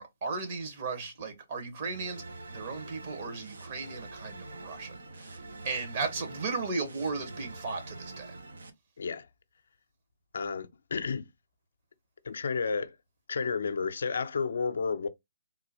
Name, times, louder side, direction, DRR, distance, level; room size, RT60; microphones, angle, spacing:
voice 1, 0.0-2.2 2.5-8.4, right 4 dB, 45° right, 1.3 m, -36 dB
sound 1, 1.8-8.7, right 2 dB, 75° right, 0.8 m, -45 dB
voice 2, 10.3-11.3 12.2-13.0 13.3-15.1, left 5 dB, 65° left, 0.5 m, -31 dB
3.7 x 2.3 x 3.0 m
hypercardioid pair, 145°, 0 cm